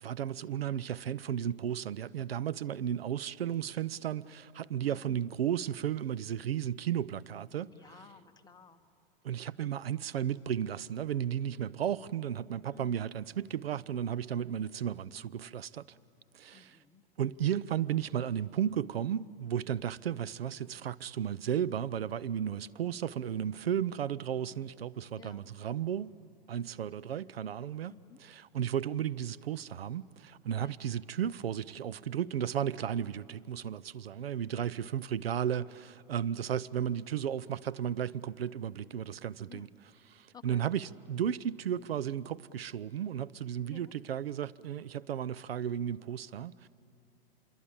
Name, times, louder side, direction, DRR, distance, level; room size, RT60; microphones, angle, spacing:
voice 1, 0.0-7.7 9.2-15.8 16.3-16.8 17.2-26.1 26.5-27.9 28.2-39.7 40.1-46.7, right 9 dB, 80° right, 0.6 m, -34 dB
voice 2, 4.8-5.2 7.7-8.8 12.7-13.1 16.5-17.0 25.1-25.5 26.9-27.3 27.9-28.2 30.6-30.9 34.5-34.9 39.5-39.7 40.3-40.6 43.7-43.9, left 8 dB, 15° left, 1.2 m, -55 dB
25.5 x 22.5 x 8.7 m
hypercardioid pair, 105°, 30 cm